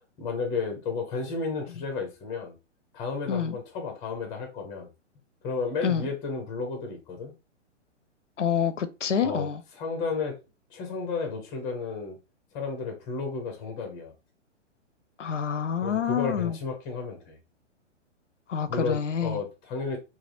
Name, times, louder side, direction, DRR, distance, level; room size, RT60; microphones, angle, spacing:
voice 1, 0.2-2.5 2.9-4.9 5.4-7.3 9.2-9.5 9.8-10.4 10.7-12.2 12.5-14.1 15.8-17.4 18.7-20.0, left 4 dB, 10° left, 0.4 m, -32 dB
voice 2, 8.4-9.6 15.2-16.6 18.5-19.4, left 7 dB, 80° left, 0.5 m, -27 dB
3.3 x 2.3 x 2.6 m
figure-of-eight pair, 115°, 36 cm